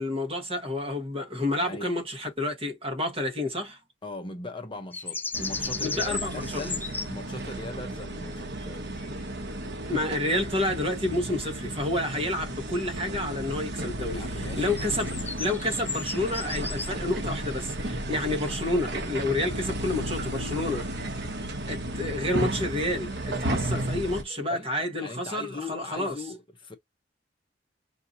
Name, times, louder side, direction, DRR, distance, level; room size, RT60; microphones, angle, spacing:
voice 1, 0.0-3.8 5.8-6.6 9.9-20.9 21.7-26.2, left 1 dB, 30° right, 1.3 m, -29 dB
voice 2, 1.6-1.9 4.0-9.2 14.1-14.8 24.5-24.7 25.0-26.7, left 2 dB, 25° left, 0.8 m, -39 dB
sound 1, 4.9-7.1 8.2-8.6 9.0-9.2 12.4-12.6 14.6-16.9 21.1-21.8 23.1-24.0 24.3-24.5, left 4 dB, 10° left, 0.3 m, -36 dB
sound 2, 5.3-24.2, right 1 dB, 60° right, 0.9 m, -33 dB
5.7 x 2.7 x 2.7 m
head